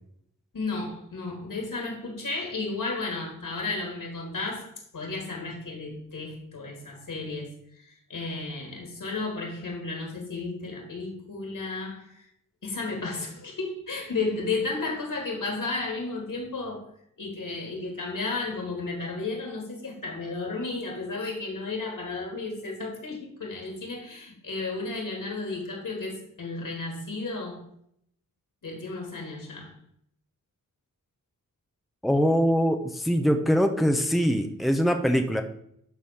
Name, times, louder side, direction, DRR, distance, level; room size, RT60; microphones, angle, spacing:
voice 1, 0.5-12.3 12.6-16.9 17.2-27.6 28.6-29.7, left 3 dB, 75° left, 3.6 m, -33 dB
voice 2, 32.0-35.4, equal, ahead, 1.0 m, -23 dB
11.5 x 4.2 x 7.2 m
wide cardioid pair, 85°, 33 cm